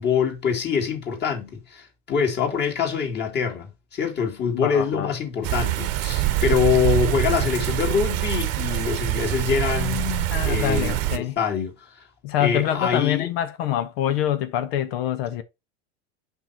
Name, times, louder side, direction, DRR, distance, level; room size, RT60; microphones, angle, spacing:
voice 1, 0.0-10.2 10.4-11.7 12.4-13.3, left 6 dB, 30° left, 2.3 m, -25 dB
voice 2, 4.5-5.1 9.7-11.4 12.2-15.4, left 11 dB, 60° left, 0.9 m, -26 dB
sound 1, 5.4-11.2, right 16 dB, 45° right, 1.0 m, -24 dB
5.5 x 4.6 x 4.3 m
hypercardioid pair, 110°, 34 cm